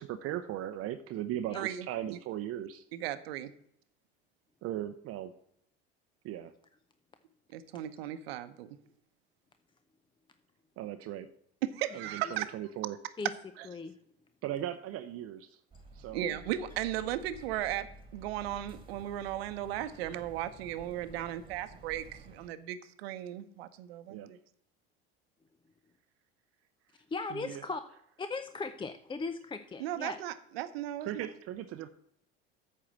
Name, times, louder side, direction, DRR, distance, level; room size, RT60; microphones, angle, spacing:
voice 1, 0.0-2.8 4.6-5.3 6.2-6.5 10.8-11.3 11.9-13.0 14.4-15.6 15.9-16.4 24.1-24.3 27.3-27.6 31.0-31.9, right 12 dB, 50° right, 9 dB, 0.6 m, -38 dB
voice 2, 1.5-2.2 2.9-3.5 7.5-8.7 11.6-12.5 16.1-24.4 29.8-31.3, right 12 dB, 80° right, 11 dB, 0.9 m, -36 dB
voice 3, 13.6-14.0 27.1-27.8 28.2-30.2, left 4 dB, 15° left, 9 dB, 0.5 m, -38 dB
sound 1, 15.7-22.5, right 3 dB, 15° right, 2.0 m, -52 dB
8.6 x 4.6 x 7.4 m, 0.70 s
hypercardioid pair, 85°, 30 cm